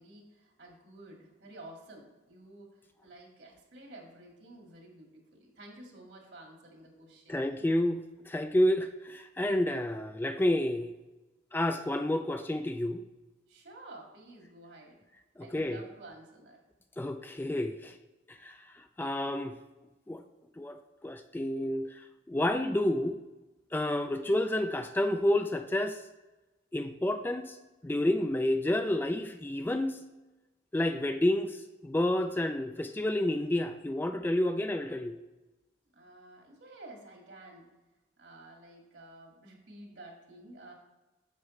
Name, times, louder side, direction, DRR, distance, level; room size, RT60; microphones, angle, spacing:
voice 1, 0.0-7.7 13.5-15.0 15.4-16.6 24.1-24.4 35.9-37.7 38.2-40.7, right 2 dB, 70° right, 0 dB, 2.1 m, -51 dB
voice 2, 7.3-10.9 11.5-13.0 15.4-15.8 17.0-18.0 18.3-19.6 20.1-20.2 20.6-23.2 23.7-26.0 26.7-27.6 27.8-30.0 30.7-35.2, left 1 dB, 10° left, 8 dB, 0.3 m, -30 dB
9.6 x 7.3 x 3.2 m, 1.1 s
head